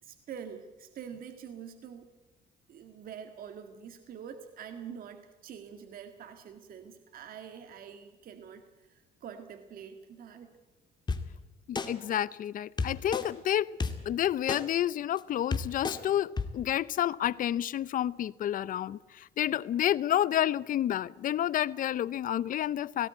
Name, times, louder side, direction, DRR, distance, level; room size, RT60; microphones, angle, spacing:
voice 1, 0.0-2.1 2.7-10.6, right 7 dB, 60° right, 1.9 m, -46 dB
sound 1, 11.1-11.2 11.7-11.9 12.8-13.2 13.8-13.9 14.5-14.6 15.2-15.3 15.5-16.0 16.4-16.5, left 4 dB, 25° left, 2.1 m, -30 dB
voice 2, 11.7-13.7 14.0-23.1, left 11 dB, 55° left, 0.7 m, -30 dB
18.5 x 17.0 x 9.3 m
cardioid pair, 110°, 17 cm